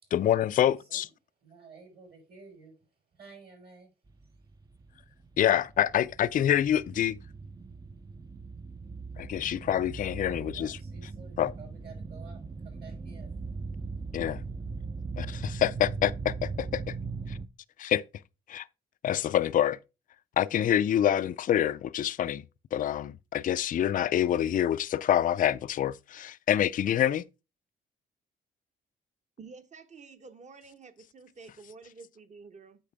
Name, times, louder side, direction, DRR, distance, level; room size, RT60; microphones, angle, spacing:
voice 1, 0.1-1.1 5.4-7.2 9.2-10.8 11.4-11.5 14.1-14.4 15.2-17.0 17.3-17.4 17.8-18.0 18.5-18.7 19.0-19.8 20.4-22.4 22.7-27.2, left 11 dB, 45° left, 0.4 m, -26 dB
voice 2, 0.6-1.0 1.4-3.9 4.2-4.3 10.5-13.3, right 4 dB, 55° right, 4.8 m, -52 dB
sound 1, 4.1-17.5, right 4 dB, 20° right, 0.5 m, -39 dB
voice 3, 29.4-32.8, right 4 dB, 35° right, 1.1 m, -50 dB
8.5 x 5.8 x 3.4 m
cardioid pair, 90°, 20 cm